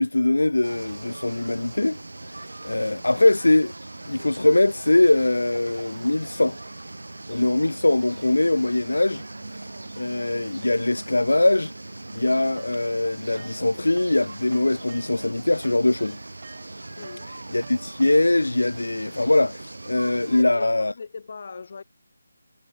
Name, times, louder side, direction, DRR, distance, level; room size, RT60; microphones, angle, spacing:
voice 1, 0.0-2.0 2.6-3.7 4.1-6.6 7.3-9.2 9.5-9.7 10.0-11.7 12.1-16.2 17.5-20.9, left 2 dB, 85° left, 0.4 m, -22 dB
sound 1, 0.6-20.4, right 2 dB, 80° right, 1.0 m, -40 dB
sound 2, 12.6-14.2 14.5-18.6, right 5 dB, 45° right, 6.8 m, -48 dB
voice 2, 17.0-17.3 20.3-21.8, left 5 dB, 50° left, 3.1 m, -38 dB
figure-of-eight pair, 160°, 0 cm